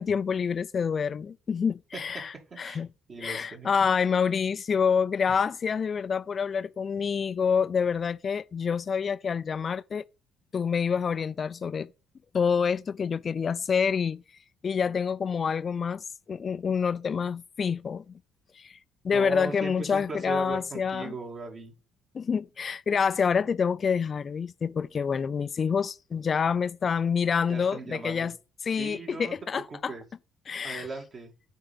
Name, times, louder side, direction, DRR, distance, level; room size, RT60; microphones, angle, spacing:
voice 1, 0.0-2.9 3.2-10.0 10.5-11.9 12.3-14.2 14.6-18.1 18.6-18.8 19.0-21.1 22.1-28.3 28.7-29.9 30.5-30.9, left 6 dB, 45° left, 0.4 m, -27 dB
voice 2, 3.1-3.7 19.1-21.7 27.5-28.3 28.8-29.3 29.7-30.0 30.6-31.3, right 3 dB, 45° right, 2.6 m, -37 dB
6.5 x 4.6 x 5.4 m
hypercardioid pair, 55°, 0 cm